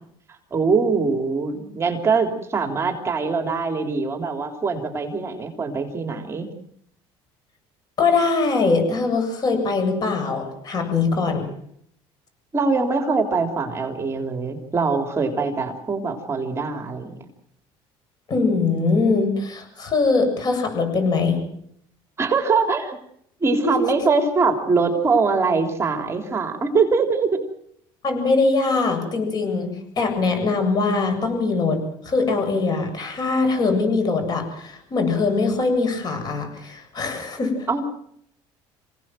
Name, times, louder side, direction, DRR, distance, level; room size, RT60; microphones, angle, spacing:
voice 1, 0.5-6.5 12.5-17.1 22.2-23.0 23.4-27.4 37.7-37.8, right 4 dB, 25° right, 5 dB, 3.4 m, -22 dB
voice 2, 8.0-11.5 18.3-21.4 23.4-23.7 28.0-29.7 30.0-31.8 32.0-37.7, left 3 dB, 40° left, 6 dB, 7.7 m, -22 dB
27.0 x 17.5 x 7.7 m, 0.71 s
cardioid pair, 125°, 11 cm